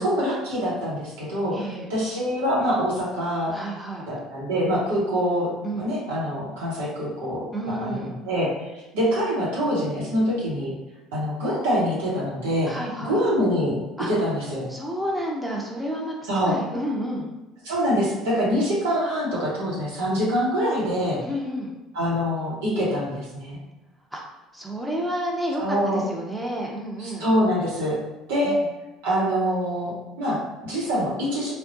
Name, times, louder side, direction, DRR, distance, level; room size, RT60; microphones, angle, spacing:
voice 1, 0.0-1.6 1.9-3.5 4.1-10.7 11.1-12.7 13.0-13.8 14.1-14.7 16.3-16.6 17.6-21.2 21.9-23.6 25.6-26.0 27.0-28.0 28.3-28.6 29.0-31.5, equal, 85° right, -6 dB, 1.1 m, -25 dB
voice 2, 1.5-1.9 3.5-4.1 5.6-5.9 7.5-8.1 12.6-13.2 14.0-14.1 14.7-16.2 16.5-17.3 21.2-21.7 24.1-24.2 24.5-27.3 28.4-28.7, equal, 5° right, -3 dB, 0.7 m, -30 dB
3.6 x 2.3 x 2.6 m, 1.0 s
hypercardioid pair, 70°, 0 cm